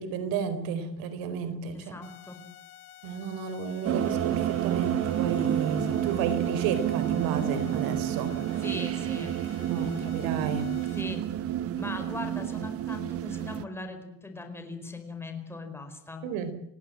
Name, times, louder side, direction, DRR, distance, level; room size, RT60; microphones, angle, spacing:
voice 1, 0.0-1.9 3.0-8.3 9.7-10.7 16.2-16.5, right 6 dB, 75° right, 12 dB, 4.5 m, -32 dB
voice 2, 1.7-2.4 8.6-9.3 10.9-11.2 11.8-16.3, left 3 dB, 5° left, 6 dB, 4.7 m, -39 dB
sound 1, 2.0-11.0, left 12 dB, 90° left, 2.8 m, -50 dB
sound 2, 3.8-13.6, right 11 dB, 40° right, 1.2 m, -29 dB
30.0 x 18.5 x 7.7 m, 0.82 s
cardioid pair, 170°, 35 cm